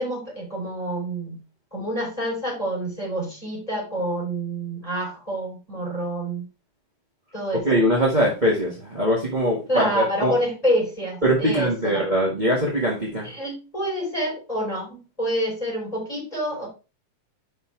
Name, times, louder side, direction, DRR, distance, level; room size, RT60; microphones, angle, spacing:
voice 1, 0.0-1.4 1.7-6.4 7.3-7.6 9.7-12.0 13.2-16.7, equal, 10° left, -3 dB, 4.3 m, -27 dB
voice 2, 7.6-10.4 11.2-13.3, equal, 25° right, -4 dB, 0.9 m, -22 dB
5.8 x 5.5 x 4.5 m, 0.31 s
omnidirectional pair, 3.5 m